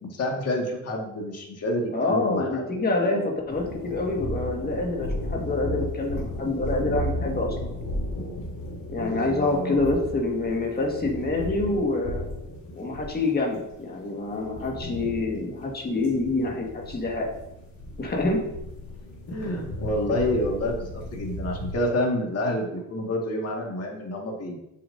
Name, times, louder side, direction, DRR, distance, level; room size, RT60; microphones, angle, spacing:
voice 1, 0.0-2.7 3.0-3.3 8.9-9.8 19.3-24.6, left 1 dB, 50° left, 0 dB, 1.9 m, -28 dB
voice 2, 1.9-3.2 3.5-7.7 8.9-12.3 12.7-17.3 18.0-18.4, left 2 dB, 30° left, 0 dB, 1.8 m, -26 dB
sound 1, 3.5-21.7, left 1 dB, 90° left, 3.2 m, -35 dB
8.8 x 7.5 x 2.7 m, 0.89 s
cardioid pair, 150°, 33 cm